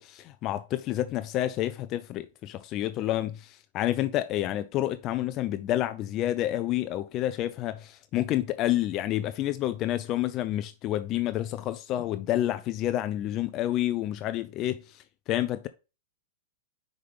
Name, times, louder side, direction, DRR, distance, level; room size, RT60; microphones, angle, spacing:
voice 1, 0.0-3.4 3.7-15.7, left 13 dB, 35° left, 0.4 m, -29 dB
5.6 x 5.0 x 3.5 m
hypercardioid pair, 120°, 0 cm